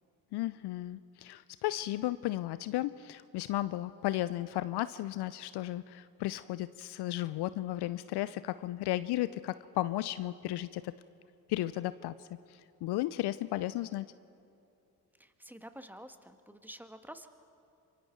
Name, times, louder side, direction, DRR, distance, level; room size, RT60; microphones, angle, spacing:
voice 1, 0.3-10.9 11.5-14.1, left 15 dB, 55° left, 16 dB, 0.6 m, -34 dB
voice 2, 15.2-17.3, equal, 5° right, 8 dB, 1.5 m, -49 dB
26.5 x 24.0 x 4.6 m, 2.7 s
hypercardioid pair, 50°, 47 cm